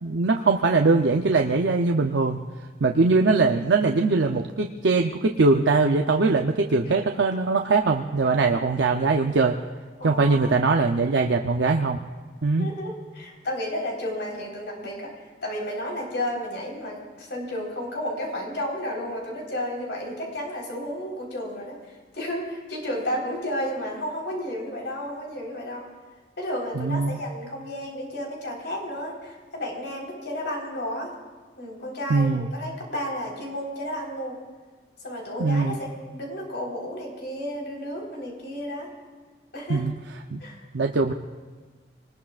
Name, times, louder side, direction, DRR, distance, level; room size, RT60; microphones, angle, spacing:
voice 1, 0.0-2.4 2.8-9.6 10.0-12.0 12.4-12.7 26.8-27.2 32.1-32.5 35.4-35.8 39.7-39.9 40.3-40.4 40.7-41.1, right 3 dB, 85° right, 3 dB, 0.7 m, -21 dB
voice 2, 10.0-10.5 12.6-15.1 15.4-25.9 26.4-31.1 31.6-34.4 35.0-38.9 39.5-39.8 40.4-40.6, equal, 85° left, -2 dB, 4.1 m, -32 dB
25.0 x 20.0 x 2.4 m, 1.4 s
head